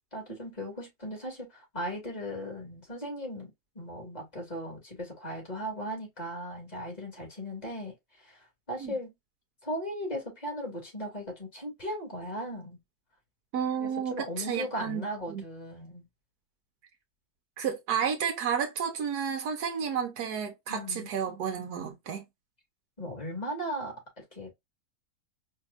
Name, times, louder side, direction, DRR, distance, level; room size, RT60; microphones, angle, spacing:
voice 1, 0.1-9.1 9.6-12.8 13.8-16.1 20.7-21.1 23.0-24.0 24.3-24.5, equal, 25° left, 2.6 m, -37 dB
voice 2, 13.5-15.4 17.6-22.2, right 7 dB, 85° right, 1.5 m, -31 dB
4.6 x 3.3 x 2.5 m
omnidirectional pair, 1.6 m